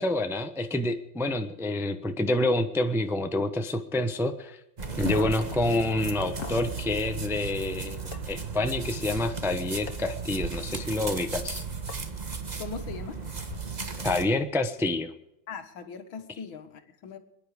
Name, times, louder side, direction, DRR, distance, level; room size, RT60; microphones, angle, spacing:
voice 1, 0.0-4.6 5.0-8.0 8.3-11.6 14.0-15.1, left 2 dB, ahead, 7 dB, 0.6 m, -28 dB
sound 1, 4.8-14.3, right 4 dB, 25° right, 1.3 m, -35 dB
sound 2, 4.9-6.7 8.1-8.2 9.9-10.0 11.9-12.0 13.4-13.5, left 6 dB, 50° left, 1.6 m, -39 dB
voice 2, 12.6-13.3 15.5-17.2, left 5 dB, 80° left, 7 dB, 2.3 m, -40 dB
27.0 x 10.5 x 5.1 m, 0.85 s
omnidirectional pair, 2.1 m